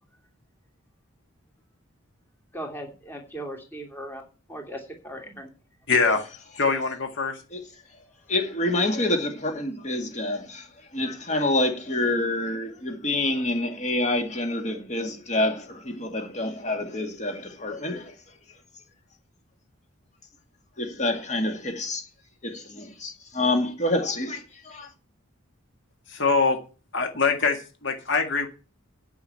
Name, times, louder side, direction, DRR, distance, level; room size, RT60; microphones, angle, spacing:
voice 1, 2.5-5.5, right 1 dB, 10° left, 2.7 m, -38 dB
voice 2, 5.9-6.3 6.6-7.4 26.1-26.6 26.9-28.5, left 4 dB, 60° left, 1.8 m, -23 dB
voice 3, 8.3-18.2 20.8-22.1 22.4-24.9, left 2 dB, 35° left, 2.1 m, -27 dB
9.6 x 6.3 x 8.7 m
head